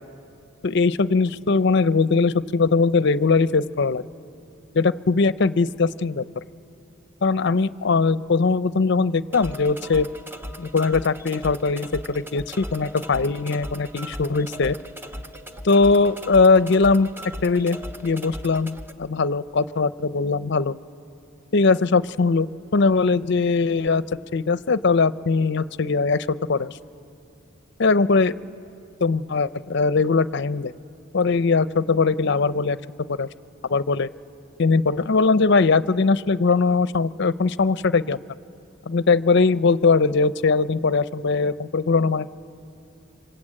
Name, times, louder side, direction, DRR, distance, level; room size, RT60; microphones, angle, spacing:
voice 1, 0.6-4.0 4.7-6.2 7.2-10.1 10.6-14.8 15.6-17.1 17.4-17.8 18.0-20.8 21.5-24.0 24.3-26.7 27.8-28.3 29.0-30.7 31.1-32.8 33.1-33.3 33.7-34.1 34.6-38.2 38.9-42.3, left 4 dB, 60° left, 15 dB, 0.6 m, -20 dB
sound 1, 9.3-18.9, equal, 10° right, 0.7 m, -38 dB
27.0 x 25.0 x 8.8 m, 2.8 s
head